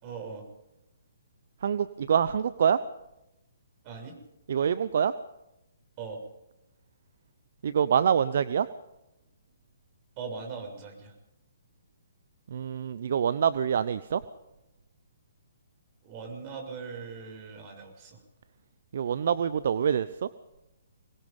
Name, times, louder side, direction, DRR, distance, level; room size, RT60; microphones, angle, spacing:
voice 1, 0.0-0.4 3.8-4.2 6.0-6.2 10.2-11.1 16.0-18.2, right 5 dB, 35° right, 3 dB, 7.0 m, -40 dB
voice 2, 1.6-2.8 4.5-5.1 7.6-8.7 12.5-14.2 18.9-20.3, right 8 dB, 60° right, 15 dB, 0.8 m, -25 dB
24.5 x 20.5 x 5.4 m, 0.91 s
hypercardioid pair, 135°, 0 cm